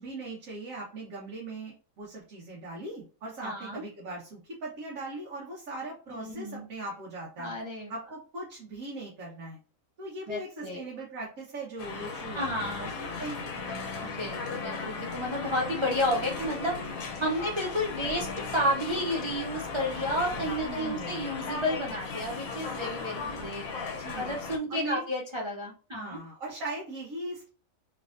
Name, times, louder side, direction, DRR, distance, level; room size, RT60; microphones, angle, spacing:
voice 1, 0.0-7.5 7.9-9.6 10.0-13.5 20.6-21.3 24.0-24.4 24.7-25.0 25.9-27.5, right 2 dB, 75° right, -4 dB, 1.4 m, -39 dB
voice 2, 3.4-3.8 6.2-6.7 7.4-7.9 10.3-10.8 12.3-12.9 14.0-16.8 17.2-23.6 24.2-26.2, equal, 40° right, -1 dB, 0.4 m, -31 dB
sound 1, 11.8-24.6, left 4 dB, 85° left, 1.1 m, -36 dB
3.4 x 3.2 x 2.5 m, 0.38 s
omnidirectional pair, 1.4 m